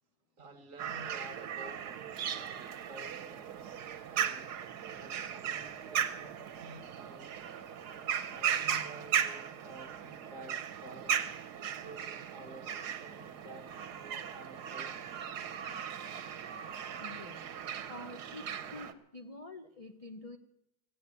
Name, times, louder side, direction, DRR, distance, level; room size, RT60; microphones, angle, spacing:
voice 1, 0.4-4.5 4.8-7.3 8.3-15.0, right 2 dB, 55° right, 6 dB, 1.7 m, -52 dB
sound 1, 0.8-18.9, right 8 dB, 80° right, 1.5 m, -37 dB
voice 2, 17.0-17.5 17.9-20.4, left 2 dB, 35° left, 5 dB, 0.6 m, -47 dB
15.5 x 8.7 x 9.6 m, 0.83 s
omnidirectional pair, 1.7 m